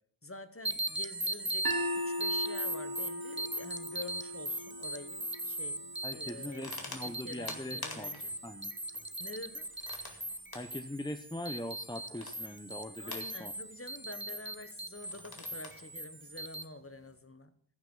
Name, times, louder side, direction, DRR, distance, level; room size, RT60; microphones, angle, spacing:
voice 1, 0.2-5.8 6.1-6.7 7.0-8.3 9.2-9.7 13.0-17.5, left 2 dB, 30° left, 10 dB, 1.2 m, -48 dB
sound 1, 0.6-16.6, right 1 dB, 25° right, 1.0 m, -39 dB
sound 2, 1.6-7.8, equal, 50° right, 1.2 m, -39 dB
sound 3, 3.6-17.2, left 3 dB, 50° left, 2.3 m, -51 dB
voice 2, 6.0-8.1 8.4-8.7 10.5-13.5, left 1 dB, 10° left, 8 dB, 0.8 m, -41 dB
15.0 x 5.9 x 7.2 m, 0.64 s
wide cardioid pair, 55°, 46 cm